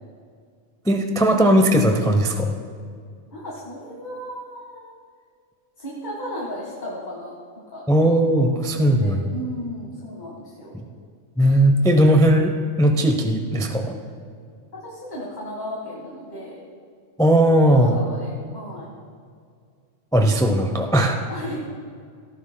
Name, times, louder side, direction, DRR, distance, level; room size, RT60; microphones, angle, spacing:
voice 1, 0.8-2.5 7.9-9.2 10.7-10.8 11.4-13.9 17.2-17.9 20.1-21.2, right 1 dB, 5° left, 4 dB, 0.5 m, -18 dB
voice 2, 3.3-4.9 5.8-7.3 7.7-7.8 8.4-10.8 14.7-16.6 17.7-18.9 21.3-21.6, equal, 35° left, -5 dB, 1.8 m, -35 dB
18.0 x 13.5 x 2.2 m, 2.2 s
omnidirectional pair, 1.3 m